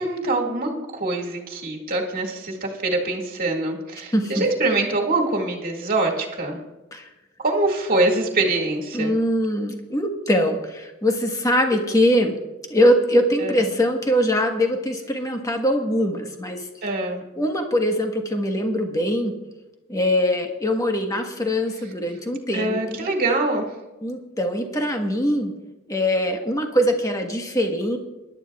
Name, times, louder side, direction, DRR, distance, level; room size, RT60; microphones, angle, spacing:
voice 1, 0.0-6.6 7.4-9.2 13.4-13.6 16.8-17.2 22.5-23.7, right 2 dB, 45° right, 0 dB, 2.0 m, -24 dB
voice 2, 4.1-4.4 6.9-7.1 8.9-12.3 12.7-16.6 17.4-19.3 19.9-23.1 24.0-25.5 25.9-28.0, equal, 15° left, 3 dB, 1.3 m, -22 dB
22.0 x 11.5 x 2.4 m, 1.1 s
head